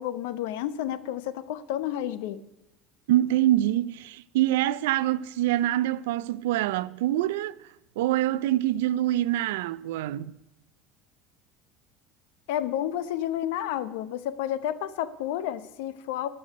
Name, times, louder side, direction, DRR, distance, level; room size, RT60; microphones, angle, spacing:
voice 1, 0.0-2.4 12.5-16.3, left 11 dB, 85° left, 0.8 m, -31 dB
voice 2, 3.1-7.6 8.0-10.3, right 14 dB, 90° right, 0.4 m, -25 dB
13.0 x 5.5 x 9.3 m
supercardioid pair, 115°, 0 cm